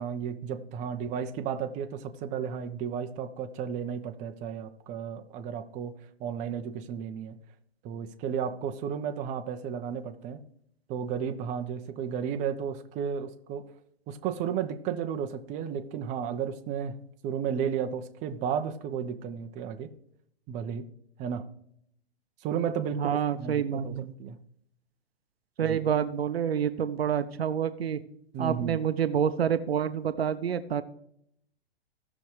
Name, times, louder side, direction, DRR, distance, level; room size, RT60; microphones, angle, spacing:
voice 1, 0.0-5.9 6.2-7.4 7.8-10.4 10.9-13.7 14.1-17.0 17.2-19.9 20.5-20.9 21.2-21.4 22.4-24.4 25.7-25.8 28.3-28.8, right 7 dB, 25° right, 6 dB, 0.7 m, -33 dB
voice 2, 22.9-24.1 25.6-28.0 28.4-30.8, right 8 dB, 70° right, 12 dB, 0.7 m, -28 dB
16.5 x 6.0 x 3.2 m, 0.71 s
figure-of-eight pair, 115°, 31 cm